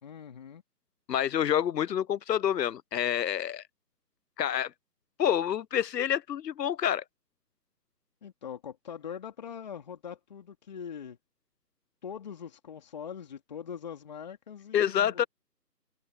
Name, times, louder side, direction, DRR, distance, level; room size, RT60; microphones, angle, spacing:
voice 1, 0.0-0.6 8.2-11.2 12.0-15.3, left 8 dB, 25° left, 2.8 m, -42 dB
voice 2, 1.1-3.6 4.4-4.7 5.2-7.0 14.7-15.2, left 10 dB, 80° left, 0.6 m, -27 dB
open air
figure-of-eight pair, 165°, 49 cm